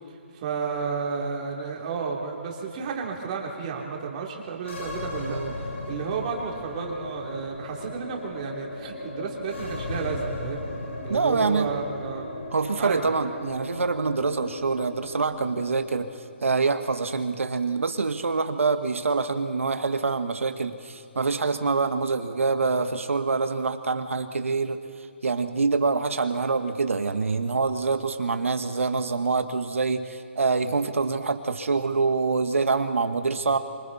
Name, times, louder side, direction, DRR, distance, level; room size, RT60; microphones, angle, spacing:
voice 1, 0.3-10.6 11.0-12.3 12.8-13.0, right 5 dB, 35° right, 0 dB, 3.2 m, -32 dB
sound 1, 4.6-16.1, left 2 dB, 75° left, 5.0 m, -37 dB
voice 2, 11.1-11.8 12.5-16.1 16.4-24.8 25.2-33.6, right 4 dB, 90° right, 8 dB, 1.5 m, -25 dB
26.0 x 24.0 x 4.2 m, 2.4 s
hypercardioid pair, 155°, 7 cm